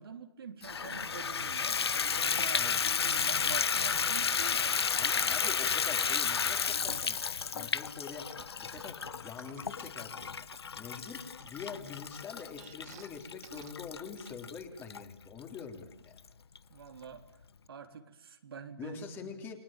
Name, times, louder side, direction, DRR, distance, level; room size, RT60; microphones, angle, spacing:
voice 1, 0.0-4.9 16.7-17.2 17.7-19.3, right 6 dB, 70° right, 6 dB, 3.6 m, -46 dB
Water tap faucet / Bathtub (filling or washing), 0.6-15.0 15.6-15.7 16.2-16.3 16.6-16.7, left 6 dB, 80° left, 1.0 m, -32 dB
voice 2, 2.6-2.9 5.0-7.2 7.5-8.3 8.6-10.4 10.8-11.2 11.5-16.2 18.8-19.6, left 6 dB, 15° left, 4 dB, 3.6 m, -45 dB
sound 1, 6.9-7.5 8.1-10.6 11.0-13.1 13.4-13.7 14.2-14.3, right 12 dB, 40° right, 2.3 m, -54 dB
29.5 x 21.5 x 9.0 m, 0.83 s
hypercardioid pair, 150°, 13 cm